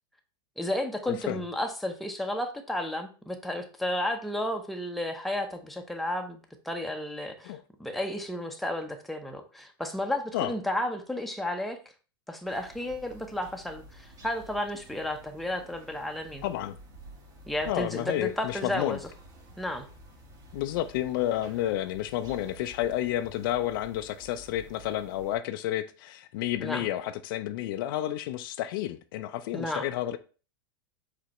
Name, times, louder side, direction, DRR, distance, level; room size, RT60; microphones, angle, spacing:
voice 1, 0.6-11.8 12.3-16.4 17.5-19.0 19.6-19.9 26.6-26.8 29.5-29.9, left 1 dB, ahead, 0.6 m, -32 dB
voice 2, 1.1-1.4 7.4-7.6 10.3-10.5 16.4-16.8 17.7-19.0 20.5-30.2, left 13 dB, 65° left, 0.4 m, -31 dB
sound 1, 12.4-25.4, equal, 30° right, 1.2 m, -51 dB
4.9 x 3.3 x 3.0 m
supercardioid pair, 125°, 12 cm